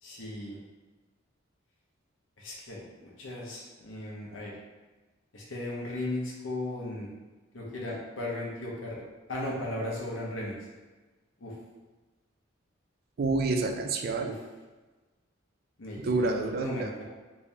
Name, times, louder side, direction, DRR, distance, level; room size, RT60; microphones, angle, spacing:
voice 1, 0.0-0.6 2.4-4.5 5.3-7.1 7.5-9.0 9.3-10.7 11.4-11.5 14.2-14.4 15.8-17.0, left 1 dB, 80° left, -4 dB, 0.9 m, -36 dB
voice 2, 13.2-14.4 16.0-16.9, right 3 dB, 50° right, 4 dB, 0.4 m, -28 dB
3.3 x 2.7 x 3.3 m, 1.2 s
head